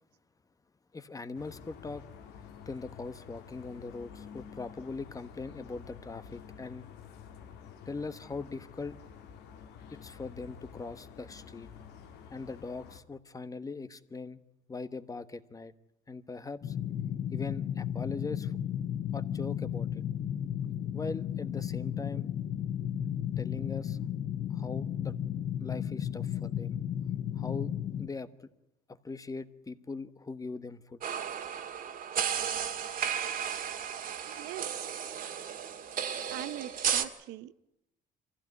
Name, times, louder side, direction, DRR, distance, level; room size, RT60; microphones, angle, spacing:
voice 1, 0.9-2.0 2.7-6.9 7.9-9.0 9.9-11.7 12.3-14.4 14.7-15.7 16.1-16.7 17.3-18.5 19.1-19.9 20.9-22.3 23.4-24.0 24.5-25.2 25.6-26.8 27.4-27.7 28.0-28.5 29.0-31.0, left 3 dB, 20° left, 12 dB, 1.2 m, -41 dB
sound 1, 1.3-13.0, left 7 dB, 85° left, 2.2 m, -50 dB
sound 2, 16.6-28.1, left 9 dB, 45° left, 0.8 m, -34 dB
sound 3, 31.0-37.0, right 8 dB, 55° right, 2.0 m, -34 dB
voice 2, 34.3-34.9 36.3-37.6, right 13 dB, 90° right, 14 dB, 0.9 m, -42 dB
24.5 x 15.5 x 9.6 m, 0.86 s
cardioid pair, 110°, 17 cm